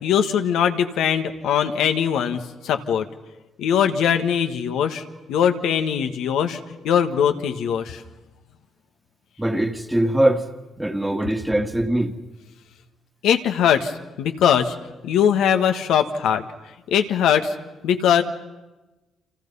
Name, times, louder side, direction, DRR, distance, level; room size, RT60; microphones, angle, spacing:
voice 1, 0.0-3.1 3.6-8.0 13.2-13.9 14.2-14.7 15.0-16.4 16.9-17.5 17.8-18.2, left 8 dB, 85° left, 1.6 m, -21 dB
voice 2, 9.4-10.5 10.8-12.1, right 1 dB, 10° right, 1.8 m, -22 dB
30.0 x 26.5 x 5.6 m
cardioid pair, 90°, 0 cm